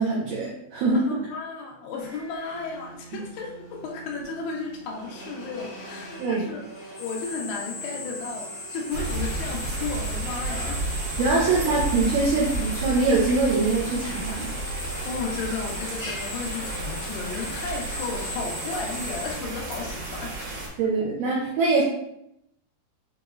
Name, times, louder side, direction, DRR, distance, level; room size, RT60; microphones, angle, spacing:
voice 1, 0.0-1.1 3.1-3.2 6.2-6.4 11.2-14.5 20.8-21.8, right 3 dB, 85° right, -4 dB, 1.8 m, -23 dB
voice 2, 0.9-6.6 7.0-10.8 11.4-11.6 15.1-20.4, left 4 dB, 85° left, 0 dB, 2.9 m, -34 dB
Drill, 2.0-19.3, left 1 dB, 45° left, 1.6 m, -38 dB
sound 1, 8.9-20.7, right 2 dB, 70° right, 2.6 m, -32 dB
7.1 x 3.0 x 2.4 m, 0.80 s
omnidirectional pair, 4.7 m